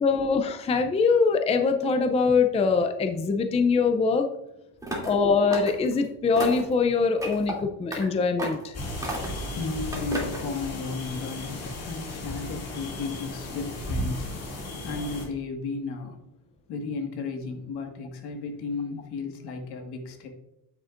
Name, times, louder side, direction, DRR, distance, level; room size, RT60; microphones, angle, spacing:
voice 1, 0.0-4.3 5.0-8.8, left 4 dB, 15° left, 6 dB, 0.5 m, -23 dB
sound 1, 4.8-5.2 5.5-6.0 6.4-6.7 7.2-7.5 7.9-8.0 8.4-8.7 9.0-9.5 9.9-10.4, right 1 dB, 10° right, 2.7 m, -33 dB
sound 2, 8.7-15.3, left 1 dB, 40° left, 2.5 m, -35 dB
voice 2, 9.5-14.5 14.8-16.2 16.7-20.3, left 4 dB, 75° left, 4 dB, 1.8 m, -34 dB
9.1 x 7.8 x 2.5 m, 0.90 s
cardioid pair, 135°, 40 cm